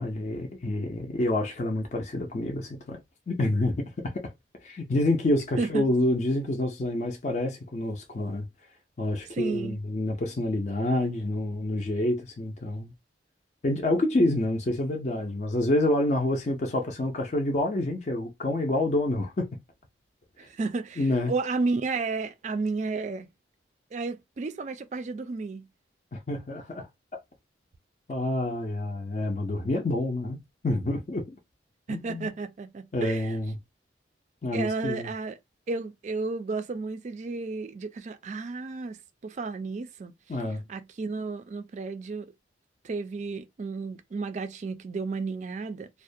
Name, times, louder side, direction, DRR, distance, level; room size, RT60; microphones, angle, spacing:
voice 1, 0.0-3.0 3.3-4.3 4.6-8.5 9.0-12.9 13.6-19.5 21.0-21.3 26.1-26.9 28.1-31.4 31.9-32.3 32.9-33.6 34.4-35.1 40.3-40.6, left 1 dB, 40° left, 0.4 m, -28 dB
voice 2, 9.3-9.8 20.4-23.3 23.9-25.7 31.9-33.3 34.5-35.4 35.7-40.1 40.7-42.3 42.8-45.9, right 3 dB, 40° right, 0.3 m, -32 dB
2.3 x 2.1 x 2.6 m
head